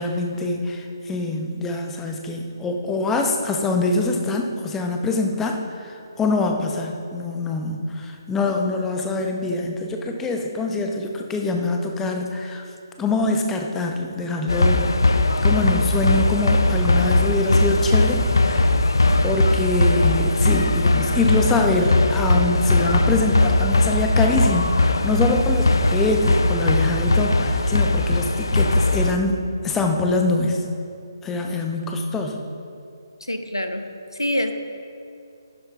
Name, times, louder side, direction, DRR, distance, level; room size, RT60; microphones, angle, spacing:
voice 1, 0.0-12.6 13.0-14.9 15.4-18.7 19.2-30.6 31.2-32.4, left 2 dB, 10° left, 2 dB, 0.8 m, -24 dB
sound 1, 14.5-29.1, left 2 dB, 65° left, 0.6 m, -19 dB
voice 2, 33.3-33.9 34.2-34.5, left 1 dB, 90° left, 7 dB, 1.0 m, -25 dB
11.5 x 10.5 x 3.6 m, 2.5 s
figure-of-eight pair, 140°, 2 cm